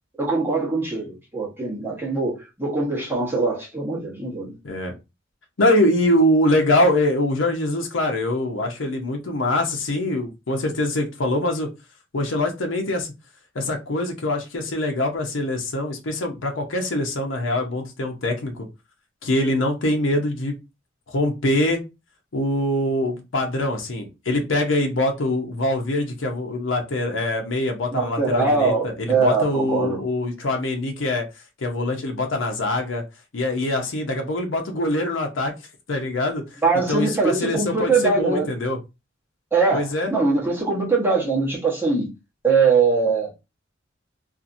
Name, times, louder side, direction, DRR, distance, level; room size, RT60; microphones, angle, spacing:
voice 1, 0.2-4.6 27.9-30.0 36.6-38.5 39.5-42.1 42.4-43.3, right 4 dB, 10° right, 1.1 m, -22 dB
voice 2, 5.6-11.7 12.1-13.1 13.5-18.7 19.2-20.6 21.1-21.8 22.3-31.3 31.6-33.0 33.3-35.5 35.9-36.4 36.9-38.8 39.7-40.1, left 1 dB, 75° left, 0.7 m, -23 dB
2.8 x 2.5 x 2.5 m
head